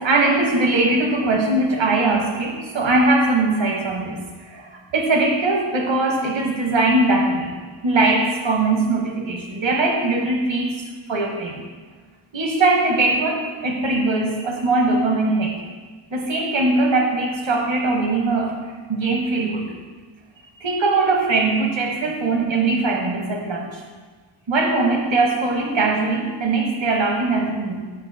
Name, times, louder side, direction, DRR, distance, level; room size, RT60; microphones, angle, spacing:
voice 1, 0.0-7.5 7.8-11.6 12.3-15.6 16.1-19.7 20.6-23.8 24.5-27.9, right 2 dB, 70° right, 1 dB, 1.0 m, -21 dB
7.2 x 6.0 x 2.7 m, 1.4 s
wide cardioid pair, 145°, 47 cm